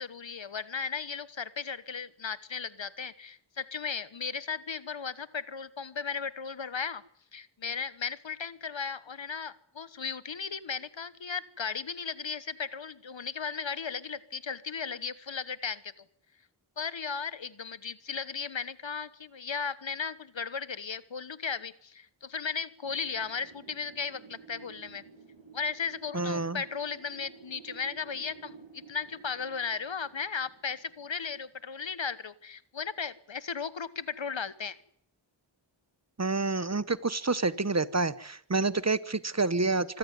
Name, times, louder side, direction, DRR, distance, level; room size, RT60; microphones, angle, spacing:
voice 1, 0.0-7.0 7.3-16.0 16.8-25.0 25.5-34.8, left 6 dB, 70° left, 16 dB, 1.2 m, -36 dB
Wind, 22.8-31.5, right 5 dB, 80° right, 5.7 m, -53 dB
voice 2, 26.1-26.6 36.2-40.0, right 3 dB, 35° right, 17 dB, 1.0 m, -28 dB
25.5 x 15.0 x 9.4 m, 0.66 s
wide cardioid pair, 45°, 47 cm